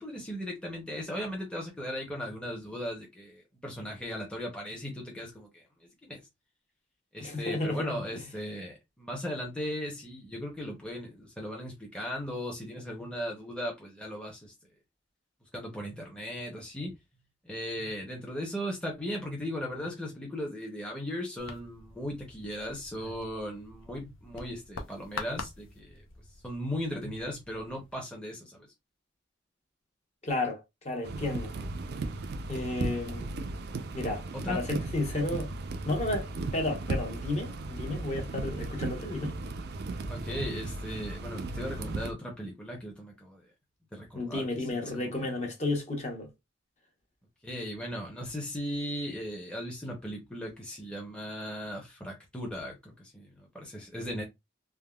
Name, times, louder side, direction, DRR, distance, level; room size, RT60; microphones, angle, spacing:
voice 1, 0.0-5.6 6.0-6.2 7.1-14.5 15.5-16.9 17.4-26.0 26.4-28.7 34.3-34.6 40.1-43.4 43.9-45.1 47.4-54.2, equal, 5° left, 0.6 m, -37 dB
voice 2, 7.2-8.2 30.2-31.5 32.5-33.3 33.9-35.5 35.8-39.3 44.1-46.3, left 2 dB, 35° left, 0.8 m, -32 dB
sound 1, 21.4-27.9, left 4 dB, 80° left, 0.5 m, -45 dB
sound 2, 31.0-42.1, right 2 dB, 55° right, 0.4 m, -36 dB
3.4 x 2.1 x 2.2 m
head